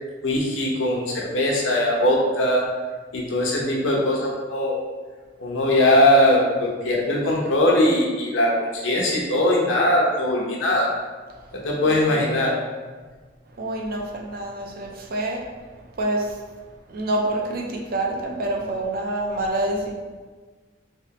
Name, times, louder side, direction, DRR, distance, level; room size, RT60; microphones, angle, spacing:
voice 1, 0.2-2.6 3.1-4.8 5.4-10.9 11.5-12.5, left 1 dB, 80° left, -2 dB, 0.8 m, -20 dB
voice 2, 13.6-15.4 16.0-16.3 16.9-19.9, right 1 dB, 50° right, 0 dB, 0.5 m, -26 dB
3.3 x 2.9 x 2.9 m, 1.4 s
head